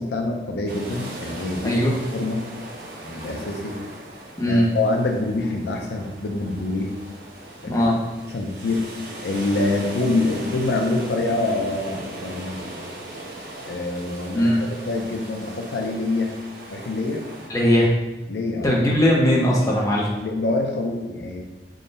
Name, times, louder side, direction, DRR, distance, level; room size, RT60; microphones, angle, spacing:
voice 1, 0.0-1.8 2.1-2.4 3.0-3.8 4.4-6.9 7.6-7.7 8.3-8.8 9.2-12.6 13.7-14.5 14.9-16.3 16.7-17.2 18.3-18.7 20.2-21.4, left 2 dB, 75° left, 2 dB, 0.4 m, -25 dB
sound 1, 0.7-17.5, right 1 dB, 60° right, 0.9 m, -38 dB
voice 2, 1.6-2.0 4.4-4.7 7.7-8.0 14.3-14.6 17.5-17.9 18.6-20.1, equal, 20° left, -4 dB, 0.6 m, -19 dB
3.7 x 2.1 x 3.9 m, 1.0 s
head